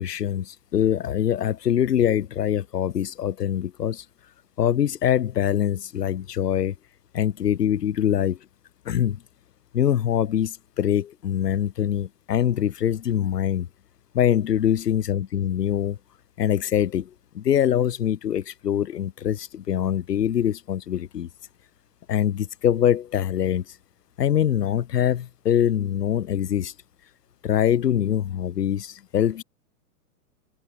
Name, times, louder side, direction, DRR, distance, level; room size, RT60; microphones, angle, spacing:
voice 1, 0.0-4.0 4.6-6.7 7.1-8.4 8.9-9.2 9.7-13.7 14.1-16.0 16.4-17.1 17.3-21.3 22.1-23.6 24.2-26.7 27.4-29.4, left 10 dB, 80° left, 2.2 m, -23 dB
hypercardioid pair, 140°, 47 cm